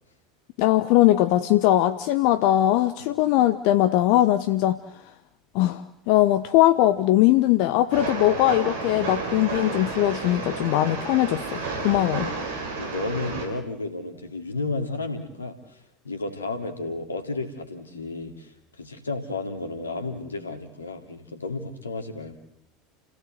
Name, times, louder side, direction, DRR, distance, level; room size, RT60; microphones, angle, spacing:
voice 1, 0.6-4.8 5.5-12.3, left 14 dB, 55° left, 11 dB, 1.0 m, -20 dB
Train, 7.9-13.5, right 4 dB, 60° right, 6.1 m, -31 dB
voice 2, 12.8-22.4, left 3 dB, 85° left, 7 dB, 2.9 m, -32 dB
30.0 x 17.0 x 8.0 m, 0.80 s
figure-of-eight pair, 75°, 0 cm